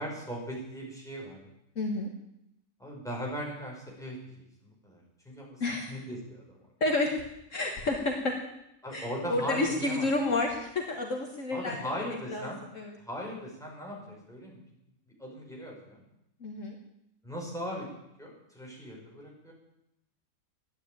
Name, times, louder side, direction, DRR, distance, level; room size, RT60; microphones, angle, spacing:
voice 1, 0.0-1.4 2.8-5.6 5.9-6.4 8.8-10.1 11.5-12.6 13.0-14.6 15.2-16.0 17.2-17.9 18.2-19.5, equal, ahead, -3 dB, 5.2 m, -38 dB
voice 2, 1.7-2.1 5.6-5.9 6.8-7.1 7.5-8.3 8.9-11.8 12.3-12.9 16.4-16.8, left 2 dB, 55° left, 2 dB, 1.8 m, -30 dB
12.5 x 9.8 x 9.2 m, 0.84 s
omnidirectional pair, 1.6 m